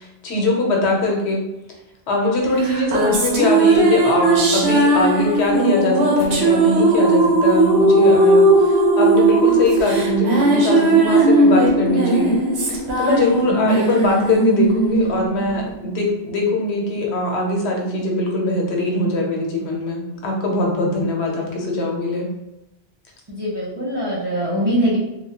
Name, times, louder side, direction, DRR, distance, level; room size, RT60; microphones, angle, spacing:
voice 1, 0.0-1.4 2.1-12.4 12.7-22.3, left 2 dB, 85° left, 0 dB, 1.0 m, -21 dB
sound 1, 2.6-16.3, right 2 dB, 75° right, 0.9 m, -17 dB
voice 2, 23.3-25.0, equal, 30° right, -7 dB, 0.5 m, -22 dB
2.9 x 2.3 x 2.8 m, 0.91 s
omnidirectional pair, 1.1 m